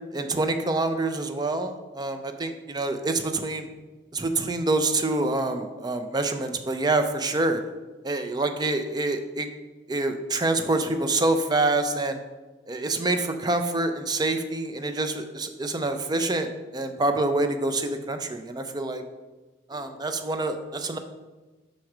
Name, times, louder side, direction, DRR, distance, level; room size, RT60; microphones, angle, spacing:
voice 1, 0.1-3.7 4.1-7.6 8.0-9.5 9.9-12.2 12.7-16.5 16.7-19.0 19.7-21.0, right 2 dB, 25° right, 7 dB, 0.5 m, -26 dB
5.4 x 4.6 x 4.9 m, 1.2 s
head